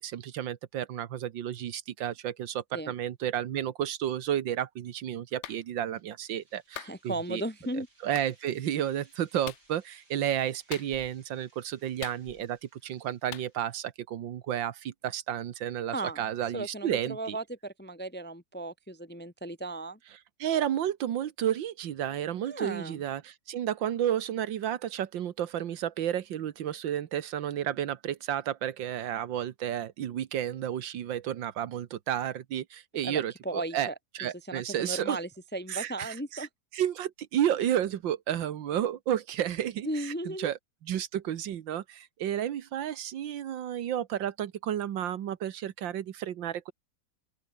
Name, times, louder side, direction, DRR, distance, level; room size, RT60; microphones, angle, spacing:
voice 1, 0.0-7.4 7.7-17.4 20.4-35.2 35.7-36.5 36.7-46.7, right 10 dB, 85° right, 1.8 m, -32 dB
Clapping, 5.4-5.6 6.8-7.0 8.1-8.3 9.4-9.7 10.7-11.2 12.0-12.6 13.3-13.5, left 11 dB, 85° left, 0.6 m, -42 dB
sound 1, 6.0-13.8, right 2 dB, 60° right, 7.3 m, -65 dB
voice 2, 6.8-7.9 15.9-16.2 16.5-20.0 22.5-23.0 33.0-33.9 34.5-36.5 39.8-40.5, right 2 dB, 10° left, 0.6 m, -36 dB
open air
omnidirectional pair, 2.0 m